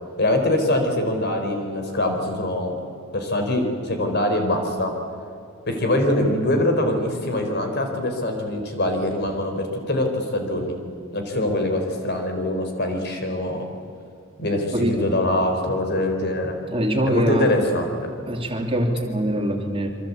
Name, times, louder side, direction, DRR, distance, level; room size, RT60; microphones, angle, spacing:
voice 1, 0.2-2.8 3.1-4.9 5.7-10.8 11.1-13.7 14.4-16.6 17.1-17.9, left 1 dB, 55° left, 4 dB, 4.2 m, -23 dB
voice 2, 14.7-15.0 16.7-17.6 18.3-19.9, equal, 25° right, 2 dB, 2.7 m, -23 dB
27.0 x 23.5 x 8.5 m, 2.5 s
head